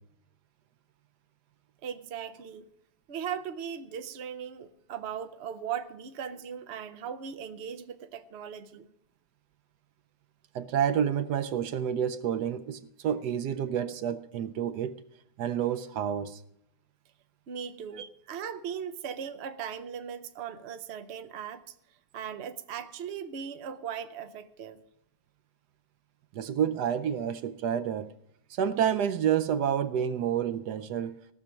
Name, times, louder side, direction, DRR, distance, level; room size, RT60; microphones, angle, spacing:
voice 1, 1.8-2.6 3.1-8.9 17.5-21.6 22.1-24.8, right 8 dB, 55° right, 0.8 m, -38 dB
voice 2, 10.5-14.9 15.4-16.4 18.0-18.1 26.3-28.1 28.5-31.2, right 9 dB, 75° right, 1.1 m, -29 dB
17.5 x 6.5 x 7.1 m
omnidirectional pair, 1.9 m